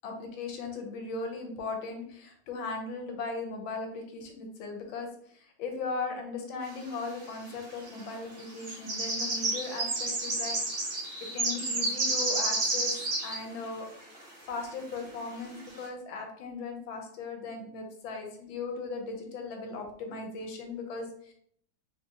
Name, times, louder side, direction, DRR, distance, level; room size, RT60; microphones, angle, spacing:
voice 1, 0.0-13.9 14.4-21.3, left 3 dB, 75° left, 3 dB, 1.4 m, -38 dB
sound 1, 7.0-7.1 7.9-8.1 8.4-13.4 13.6-13.7 14.1-14.2 15.0-15.1 15.6-15.8, right 2 dB, 35° right, 1.0 m, -30 dB
3.9 x 2.5 x 2.8 m, 0.65 s
omnidirectional pair, 2.3 m